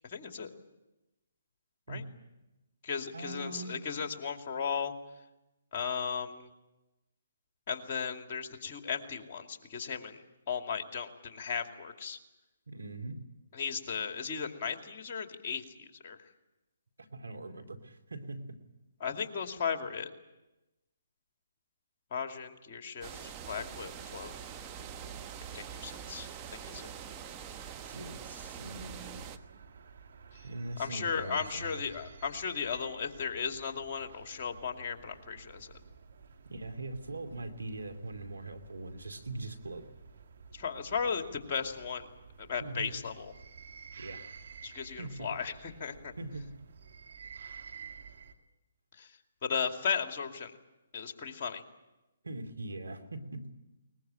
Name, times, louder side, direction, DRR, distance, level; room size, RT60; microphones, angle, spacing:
voice 1, 0.1-0.5 1.9-2.0 2.8-4.9 5.7-6.5 7.7-10.2 10.5-12.2 13.5-16.2 19.0-20.1 22.1-24.3 25.5-26.3 26.7-26.9 30.8-35.7 40.5-42.1 42.5-43.3 44.6-45.5 45.8-46.1 49.0-49.1 49.4-50.5 50.9-51.6, left 6 dB, 40° left, 5 dB, 2.5 m, -36 dB
voice 2, 3.1-3.9 12.7-13.2 17.0-18.6 27.8-29.3 30.4-31.9 36.4-39.9 42.6-43.1 44.0-44.2 45.0-45.3 46.2-46.6 52.2-53.5, right 2 dB, 85° right, 8 dB, 2.6 m, -42 dB
sound 1, 23.0-29.4, right 8 dB, 25° right, 1.1 m, -44 dB
sound 2, 28.4-48.3, right 6 dB, 60° right, 2.1 m, -52 dB
22.0 x 20.5 x 8.9 m, 1.0 s
figure-of-eight pair, 140°, 0 cm